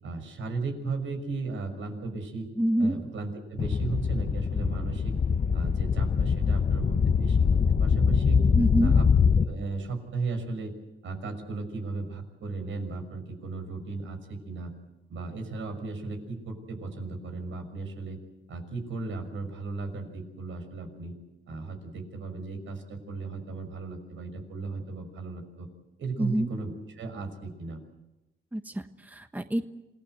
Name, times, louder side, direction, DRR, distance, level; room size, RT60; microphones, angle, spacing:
voice 1, 0.0-2.5 2.8-5.2 5.5-8.5 8.8-9.0 9.3-10.7 11.0-14.7 15.1-18.2 18.5-21.1 21.5-25.7 26.0-27.8, right 3 dB, 75° right, 5 dB, 6.1 m, -35 dB
voice 2, 2.6-2.9 8.5-8.9 26.2-26.5 28.5-29.6, right 1 dB, 10° right, 8 dB, 1.3 m, -27 dB
sound 1, 3.6-9.5, left 6 dB, 40° left, 1.0 m, -23 dB
27.0 x 18.5 x 8.0 m, 0.99 s
cardioid pair, 75°, 20 cm